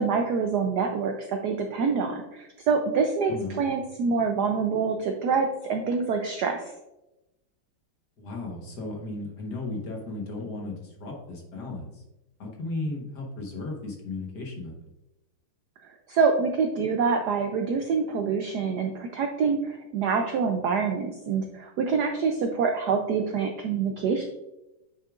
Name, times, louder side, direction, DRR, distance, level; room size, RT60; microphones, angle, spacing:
voice 1, 0.0-6.7 16.1-24.3, right 5 dB, 75° right, 4 dB, 0.9 m, -26 dB
voice 2, 3.3-3.6 8.2-12.0 12.4-14.7, left 2 dB, 55° left, 0 dB, 1.7 m, -35 dB
8.4 x 6.5 x 2.4 m, 0.95 s
omnidirectional pair, 2.4 m